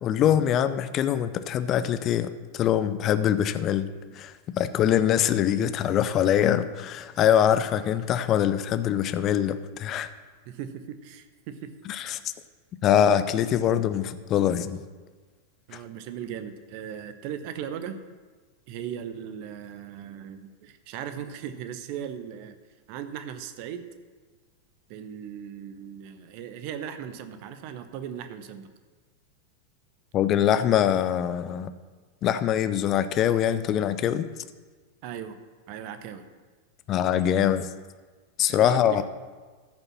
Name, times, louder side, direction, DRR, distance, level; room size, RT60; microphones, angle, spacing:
voice 1, 0.0-3.9 4.1-10.1 11.9-12.2 12.8-14.8 15.7-15.8 30.1-31.7 32.2-34.2 36.9-37.7 38.4-39.0, left 10 dB, 35° left, 12 dB, 0.6 m, -23 dB
voice 2, 10.5-11.7 15.7-18.0 18.7-22.5 22.9-23.8 24.9-28.7 35.0-35.4 35.7-36.2 38.5-39.0, right 9 dB, 45° right, 10 dB, 0.9 m, -38 dB
14.0 x 5.4 x 5.9 m, 1.4 s
figure-of-eight pair, 90°, 0 cm